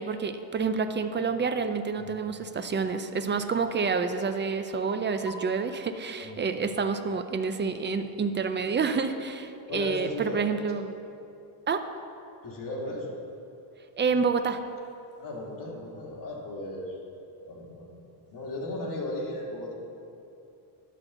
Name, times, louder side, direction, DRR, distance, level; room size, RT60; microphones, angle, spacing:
voice 1, 0.0-10.9 11.7-11.8 14.0-14.6, right 5 dB, 25° right, 9 dB, 0.4 m, -28 dB
voice 2, 4.2-4.7 5.2-5.3 6.2-6.5 7.6-8.1 9.7-10.4 12.4-13.1 15.2-17.0 17.5-18.0 18.3-19.7, left 1 dB, 40° left, -2 dB, 2.1 m, -36 dB
11.5 x 4.1 x 6.9 m, 2.7 s
cardioid pair, 100°, 49 cm